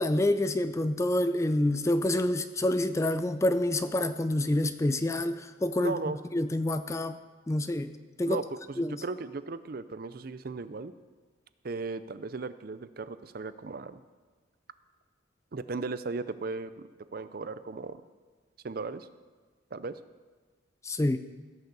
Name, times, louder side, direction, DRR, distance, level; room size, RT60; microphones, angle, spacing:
voice 1, 0.0-5.9 6.3-7.2 7.5-7.9 8.2-8.4 8.8-9.0 20.8-21.2, left 1 dB, 15° left, 11 dB, 0.4 m, -27 dB
voice 2, 5.8-6.2 8.3-10.9 11.6-14.0 15.5-18.0 18.6-19.1 19.7-20.0, right 3 dB, 50° right, 13 dB, 0.5 m, -36 dB
16.0 x 6.6 x 6.9 m, 1.4 s
head